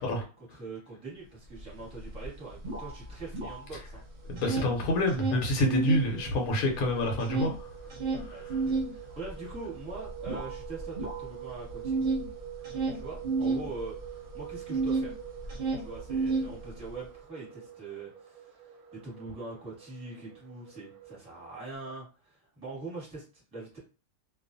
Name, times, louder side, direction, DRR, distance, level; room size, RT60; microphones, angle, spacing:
voice 1, 0.0-4.0 8.3-12.0 12.9-15.2 15.8-23.8, right 3 dB, 5° right, -5 dB, 0.9 m, -43 dB
sound 1, 1.6-1.7 1.9-3.9 4.2-6.1 6.5-15.1 15.4-16.9, right 3 dB, 55° right, 0.6 m, -31 dB
sound 2, 4.0-21.8, right 13 dB, 85° right, 1.1 m, -46 dB
voice 2, 4.3-7.7 8.1-8.6, left 1 dB, 80° left, 1 dB, 1.0 m, -28 dB
2.4 x 2.3 x 2.5 m, 0.34 s
omnidirectional pair, 1.6 m